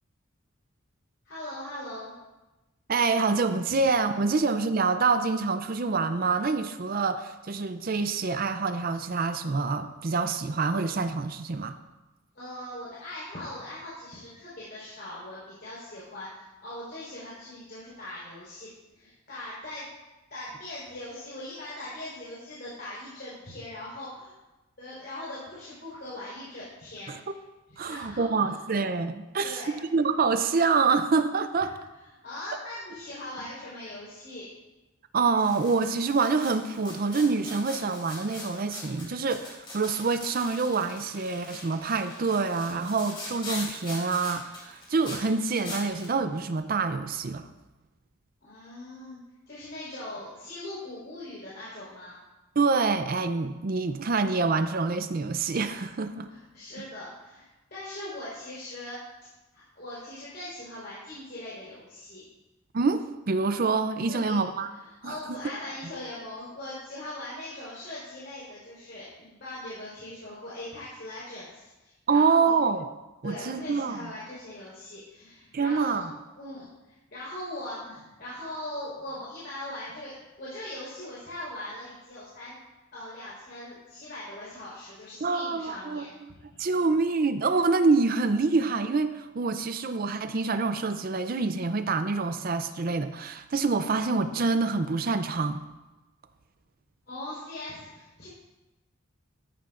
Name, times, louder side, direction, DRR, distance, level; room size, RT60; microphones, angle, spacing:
voice 1, 1.2-2.1 3.7-3.8 12.3-19.9 20.3-24.3 24.8-27.1 27.7-28.6 29.4-29.8 31.6-31.7 32.2-34.5 48.4-49.2 49.5-52.2 56.3-62.2 64.1-64.4 64.8-72.6 73.2-76.0 76.4-82.6 82.9-86.6 97.1-98.3, left 1 dB, 50° left, -8 dB, 4.2 m, -40 dB
voice 2, 2.9-11.8 27.1-27.2 27.8-31.7 35.1-47.5 52.6-56.3 62.7-64.7 65.0-65.1 72.1-72.9 73.2-74.0 75.5-76.1 85.2-86.0 86.6-95.6, right 4 dB, 45° right, 9 dB, 0.5 m, -26 dB
sound 1, 35.4-46.1, left 2 dB, 25° left, 3.5 m, -42 dB
14.0 x 13.0 x 2.5 m, 1.1 s
head